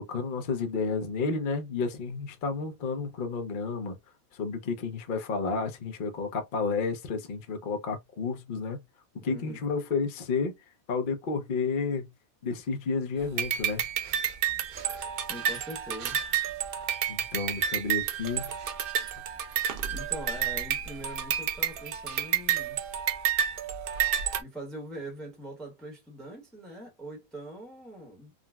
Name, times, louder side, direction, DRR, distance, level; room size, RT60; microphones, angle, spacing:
voice 1, 0.0-4.0 4.3-8.8 9.2-10.5 10.9-12.1 12.4-13.8 17.1-18.5, left 4 dB, 50° left, 0.7 m, -31 dB
voice 2, 9.3-9.6 15.2-16.2 19.8-22.8 24.4-28.3, right 1 dB, ahead, 0.9 m, -42 dB
sound 1, 13.4-24.4, right 9 dB, 80° right, 0.5 m, -30 dB
3.8 x 2.1 x 2.3 m
omnidirectional pair, 1.5 m